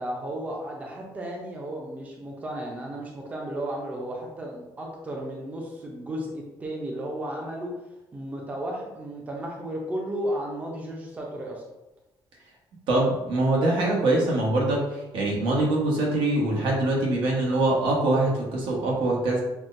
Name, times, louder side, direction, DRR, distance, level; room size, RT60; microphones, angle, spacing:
voice 1, 0.0-7.7 8.1-11.6, right 1 dB, 15° right, -1 dB, 0.5 m, -34 dB
voice 2, 12.9-19.4, right 2 dB, 85° right, -3 dB, 1.2 m, -23 dB
5.9 x 2.1 x 2.6 m, 0.99 s
cardioid pair, 180°, 9 cm